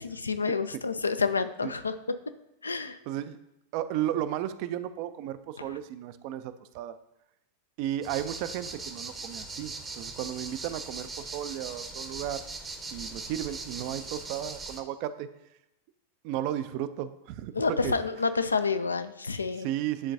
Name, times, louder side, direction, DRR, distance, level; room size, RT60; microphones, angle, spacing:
voice 1, 0.0-2.2 2.6-3.0 5.6-5.8 17.5-19.7, left 4 dB, 75° left, 11 dB, 0.3 m, -29 dB
voice 2, 3.1-3.4 3.7-6.9 7.8-12.4 12.9-15.3 16.2-17.5 17.8-18.0 19.6-20.1, right 11 dB, 45° right, 12 dB, 0.3 m, -34 dB
sound 1, 8.0-14.8, right 3 dB, 15° right, 0.7 m, -40 dB
10.5 x 3.7 x 2.6 m, 0.86 s
figure-of-eight pair, 90°, 0 cm